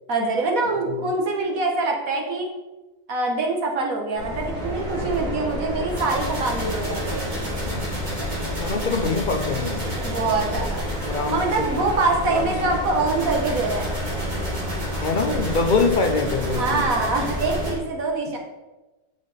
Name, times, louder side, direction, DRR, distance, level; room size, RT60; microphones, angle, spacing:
voice 1, 0.1-2.5 3.1-7.3 10.0-10.8 11.3-13.9 16.5-18.4, right 3 dB, 60° right, 1 dB, 1.8 m, -24 dB
sound 1, 4.2-17.7, equal, 25° right, 2.8 m, -28 dB
voice 2, 8.4-10.0 11.0-11.9 12.3-12.5 15.0-16.8, left 4 dB, 40° left, 6 dB, 0.7 m, -24 dB
8.7 x 6.2 x 4.2 m, 1.1 s
omnidirectional pair, 1.7 m